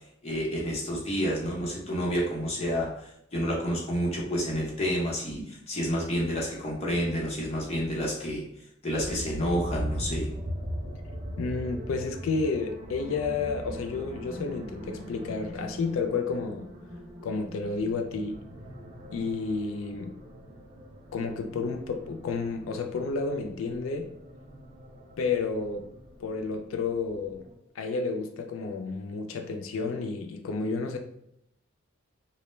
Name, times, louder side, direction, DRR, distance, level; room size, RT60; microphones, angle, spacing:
voice 1, 0.2-8.4 8.8-10.3, equal, 30° left, -4 dB, 0.7 m, -29 dB
sound 1, 9.0-27.5, equal, 40° right, 0.4 m, -40 dB
voice 2, 11.4-16.7 17.2-18.4 19.1-20.1 21.1-24.1 25.2-25.9 26.2-27.4 27.8-31.0, left 4 dB, 85° left, 5 dB, 0.3 m, -31 dB
2.2 x 2.1 x 3.0 m, 0.75 s
head